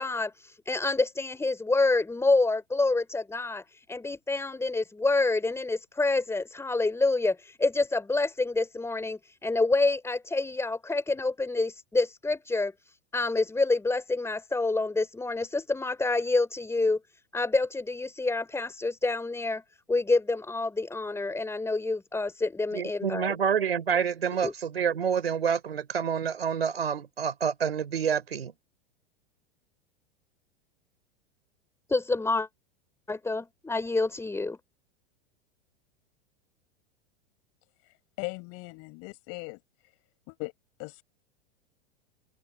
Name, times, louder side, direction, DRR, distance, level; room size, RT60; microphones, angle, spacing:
voice 1, 0.0-17.0 17.3-19.6 19.9-23.4 24.4-24.5 31.9-32.5 33.1-34.6, left 3 dB, 10° left, 3.8 m, -27 dB
voice 2, 22.7-28.5, right 7 dB, 80° right, 3.8 m, -28 dB
voice 3, 38.2-39.6 40.3-40.5 40.8-41.0, left 31 dB, 50° left, 6.8 m, -38 dB
hypercardioid pair, 95°, 30 cm